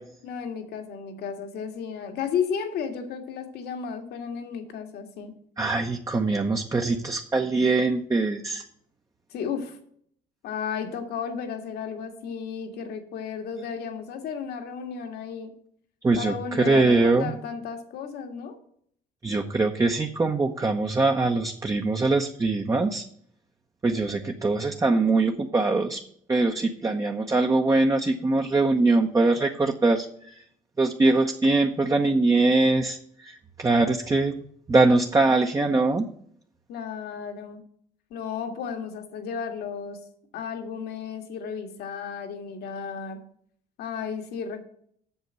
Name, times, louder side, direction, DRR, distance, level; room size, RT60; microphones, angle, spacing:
voice 1, 0.2-5.3 9.3-9.8 10.4-15.5 16.2-18.6 36.7-37.6 38.1-40.0 40.3-43.2 43.8-44.6, left 7 dB, 75° left, 6 dB, 1.8 m, -33 dB
voice 2, 5.6-8.6 16.0-16.3 16.6-17.3 19.2-23.0 23.8-26.0 26.3-30.1 30.8-33.0 33.6-34.4 34.7-36.1, right 3 dB, 20° right, 3 dB, 0.8 m, -22 dB
8.1 x 6.5 x 6.4 m, 0.65 s
cardioid pair, 110°, 17 cm